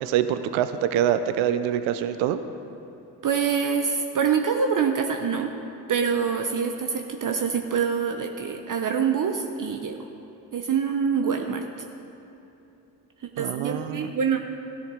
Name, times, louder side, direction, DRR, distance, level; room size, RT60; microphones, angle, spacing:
voice 1, 0.0-2.4 13.4-14.1, right 10 dB, 85° right, 11 dB, 0.6 m, -25 dB
voice 2, 3.2-5.5 5.9-10.0 10.5-11.7 13.2-14.4, right 6 dB, 45° right, 4 dB, 0.8 m, -25 dB
14.0 x 10.0 x 3.8 m, 3.0 s
supercardioid pair, 50°, 45 cm